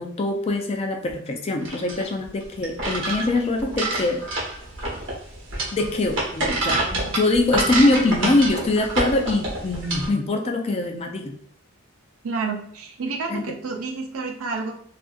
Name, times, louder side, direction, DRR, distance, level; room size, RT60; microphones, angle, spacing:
voice 1, 0.0-4.2 5.7-11.4 13.3-13.5, left 2 dB, 30° left, 3 dB, 0.4 m, -23 dB
sound 1, 1.6-10.1, right 2 dB, 60° right, 0.9 m, -27 dB
voice 2, 12.2-14.7, right 4 dB, 85° right, 2 dB, 0.6 m, -29 dB
2.6 x 2.5 x 2.4 m, 0.64 s
head